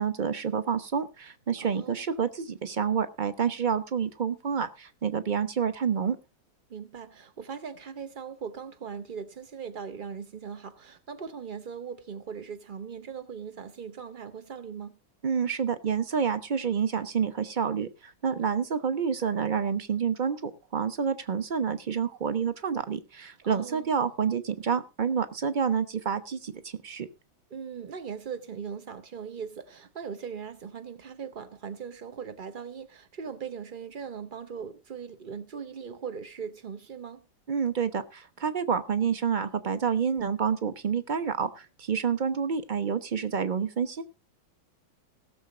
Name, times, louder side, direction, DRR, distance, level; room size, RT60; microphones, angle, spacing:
voice 1, 0.0-6.2 15.2-27.1 37.5-44.0, right 6 dB, 40° right, 0.7 m, -28 dB
voice 2, 1.6-2.0 6.7-15.0 23.4-23.9 27.5-37.3, right 6 dB, 75° right, 0.4 m, -39 dB
17.5 x 6.9 x 4.9 m
omnidirectional pair, 2.2 m